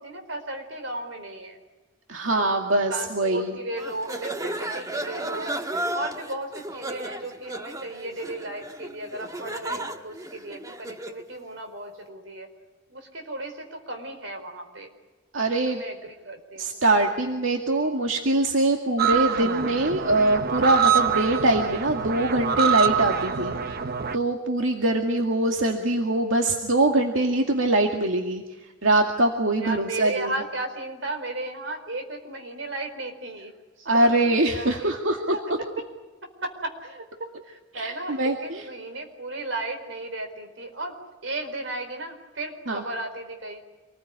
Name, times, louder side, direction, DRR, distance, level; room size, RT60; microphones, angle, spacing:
voice 1, 0.0-1.6 2.3-5.5 5.9-12.5 12.9-14.9 15.5-16.8 29.6-33.5 33.8-34.9 35.3-35.9 36.4-43.6, right 2 dB, 70° right, 5 dB, 4.7 m, -35 dB
voice 2, 2.1-3.6 15.3-15.8 16.6-23.5 24.1-28.4 28.8-30.4 33.9-35.4 37.7-38.6 42.7-42.8, right 2 dB, 90° right, 2 dB, 2.2 m, -23 dB
sound 1, 3.8-11.2, right 1 dB, 20° right, 1.5 m, -34 dB
sound 2, 19.0-24.2, right 7 dB, 55° right, 1.0 m, -25 dB
27.5 x 20.5 x 9.7 m, 1.2 s
head